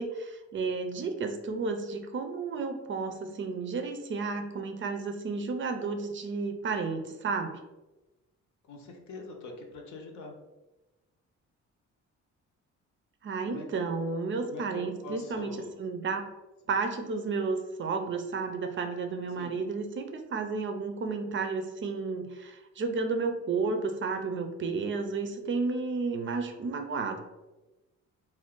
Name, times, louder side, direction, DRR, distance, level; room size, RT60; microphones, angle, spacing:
voice 1, 0.0-7.5 13.2-16.3 16.7-27.2, right 4 dB, 40° right, 6 dB, 0.4 m, -32 dB
voice 2, 8.7-10.3 13.4-13.7 14.4-15.8 19.4-19.5, left 3 dB, 70° left, 2 dB, 0.7 m, -43 dB
2.5 x 2.2 x 3.6 m, 1.1 s
cardioid pair, 90°, 30 cm